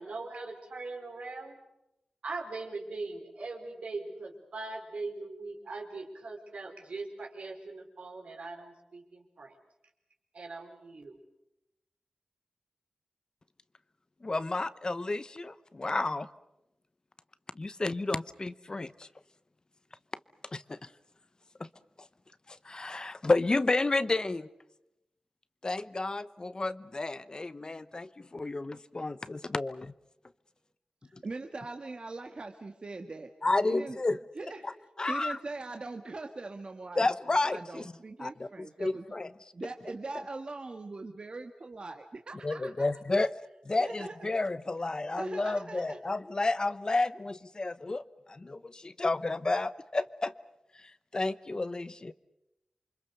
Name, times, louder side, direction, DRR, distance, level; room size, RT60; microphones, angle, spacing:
voice 1, 0.0-1.6 2.2-9.6 10.3-11.2, right 3 dB, 75° right, 2 dB, 4.8 m, -41 dB
voice 2, 14.2-16.3 17.6-19.1 20.5-20.9 21.6-21.7 22.5-24.5 25.6-29.9 31.1-31.2 33.4-34.2 34.6-34.7 35.0-35.4 37.0-37.9 38.2-39.3 42.4-43.3 43.7-50.3 50.7-52.1, left 2 dB, 35° left, 15 dB, 0.8 m, -31 dB
voice 3, 31.2-33.3 33.6-34.0 34.4-34.6 35.1-37.1 37.5-39.0 39.5-42.7 43.8-44.1 45.1-46.0, right 3 dB, 50° right, 4 dB, 1.7 m, -41 dB
28.0 x 24.5 x 6.7 m, 0.88 s
wide cardioid pair, 70°, 2 cm